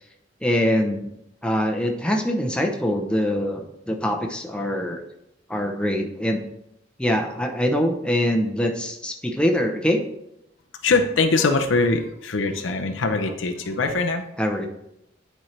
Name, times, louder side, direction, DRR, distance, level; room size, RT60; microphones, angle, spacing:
voice 1, 0.4-1.1 1.4-5.0 5.5-6.4 7.0-10.0 14.4-14.7, equal, 5° left, 2 dB, 0.7 m, -23 dB
voice 2, 10.8-14.2, left 3 dB, 90° left, 5 dB, 0.7 m, -22 dB
10.0 x 4.4 x 3.3 m, 0.80 s
head